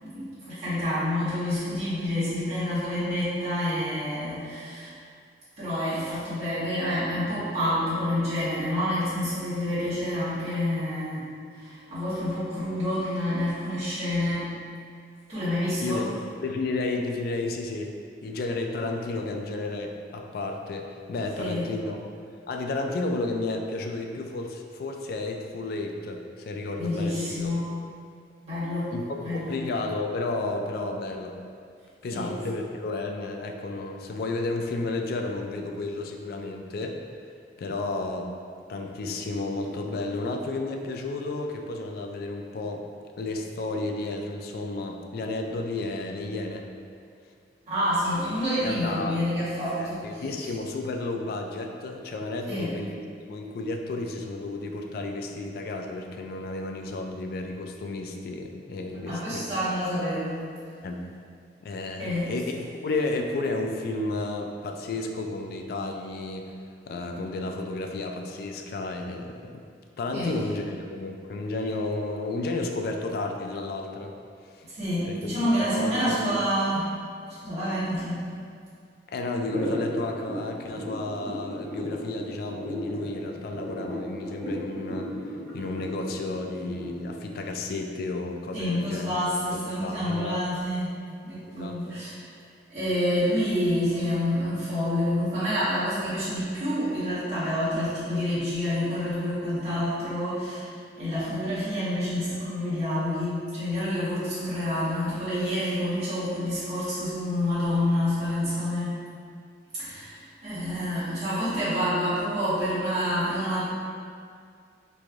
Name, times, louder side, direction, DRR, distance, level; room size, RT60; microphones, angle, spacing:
voice 1, 0.0-4.9 5.6-11.2 11.5-14.5 15.3-16.1 21.4-21.7 26.8-27.7 28.5-28.9 29.2-29.6 32.1-32.3 47.7-50.2 52.5-52.8 59.0-60.4 62.0-62.3 70.1-70.3 74.7-76.9 77.3-78.2 88.5-90.9 91.2-92.2 92.7-100.7 101.0-109.0 109.7-113.8, left 1 dB, 35° right, -14 dB, 1.5 m, -28 dB
voice 2, 16.4-17.9 18.2-22.0 22.5-27.5 28.9-31.4 32.0-37.0 37.6-38.3 38.7-42.8 43.2-46.7 48.6-49.2 49.8-59.4 60.8-61.1 61.6-66.5 66.9-69.6 70.0-74.1 74.5-74.6 75.0-75.3 75.6-76.3 79.1-85.1 85.5-90.4 91.6-91.8, left 2 dB, 55° left, 3 dB, 0.3 m, -32 dB
sound 1, 79.4-87.2, equal, 5° left, 1.1 m, -35 dB
3.1 x 2.5 x 3.5 m, 2.2 s
head